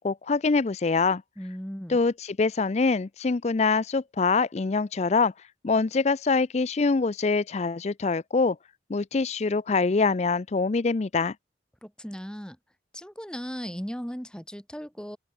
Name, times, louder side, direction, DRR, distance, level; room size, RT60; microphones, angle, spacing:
voice 1, 0.0-1.2 1.9-5.3 5.6-8.6 8.9-11.3, left 4 dB, 40° left, 0.5 m, -24 dB
voice 2, 1.4-2.0 11.8-12.6 12.9-15.2, equal, 5° left, 2.1 m, -37 dB
open air
head